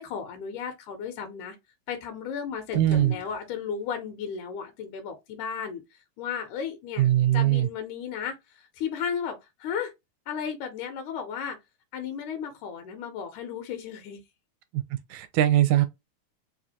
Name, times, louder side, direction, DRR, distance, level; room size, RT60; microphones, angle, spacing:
voice 1, 0.0-1.6 1.9-2.8 3.1-9.9 10.3-11.6 11.9-14.2, left 7 dB, 85° left, 2.3 m, -34 dB
sound 1, 2.5-4.0, equal, 40° right, 0.9 m, -41 dB
voice 2, 2.8-3.1 7.0-7.7 14.7-14.8 15.1-15.9, right 13 dB, 80° right, 1.9 m, -21 dB
4.9 x 2.5 x 2.8 m
omnidirectional pair, 3.4 m